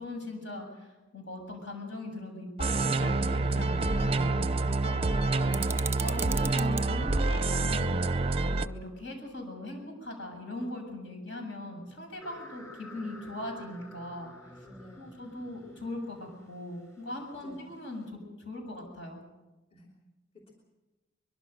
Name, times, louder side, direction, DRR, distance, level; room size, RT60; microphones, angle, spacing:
voice 1, 0.0-2.5 2.8-5.0 5.3-5.6 6.0-8.1 8.5-14.3 15.0-19.2, left 1 dB, 65° left, 3 dB, 7.4 m, -40 dB
sound 1, 2.6-8.7, right 3 dB, 30° right, 0.6 m, -27 dB
sound 2, 5.5-6.9, right 6 dB, 10° right, 1.0 m, -37 dB
sound 3, 12.2-18.0, equal, 15° left, 5.1 m, -51 dB
voice 2, 14.6-15.2 17.4-17.7 19.7-19.9, left 1 dB, 30° left, -1 dB, 3.4 m, -52 dB
24.0 x 22.0 x 6.6 m, 1.1 s
head